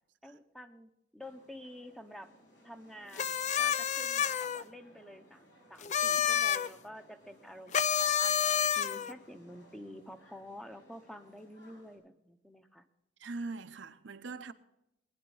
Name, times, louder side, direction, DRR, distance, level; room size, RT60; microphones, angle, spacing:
voice 1, 0.2-2.3 2.6-8.3 8.8-12.8, equal, ahead, 0.8 m, -49 dB
sound 1, 1.2-12.0, equal, 85° left, 5.5 m, -61 dB
sound 2, 3.2-4.6 5.8-6.7 7.7-9.1, left 8 dB, 40° left, 0.4 m, -29 dB
voice 2, 13.2-14.5, right 3 dB, 75° right, 0.8 m, -41 dB
20.5 x 10.0 x 3.9 m
head